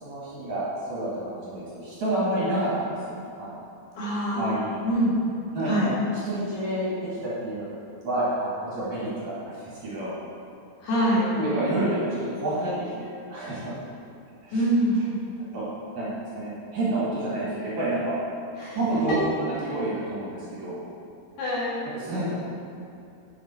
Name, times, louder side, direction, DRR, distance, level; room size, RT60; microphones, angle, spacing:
voice 1, 0.0-3.1 3.4-3.6 4.3-4.8 5.5-5.9 6.2-7.7 8.0-10.1 11.3-13.8 14.4-14.6 15.0-15.1 15.5-15.6 15.9-16.1 16.3-18.1 18.7-20.8 21.8-22.4, right 1 dB, 50° right, -9 dB, 3.2 m, -29 dB
voice 2, 4.0-4.5 4.8-5.2 5.6-5.9 10.8-11.3 14.5-15.0 18.6-18.8 21.4-21.7, right 1 dB, 80° left, -8 dB, 4.5 m, -24 dB
8.8 x 7.7 x 4.4 m, 2.6 s
omnidirectional pair, 4.5 m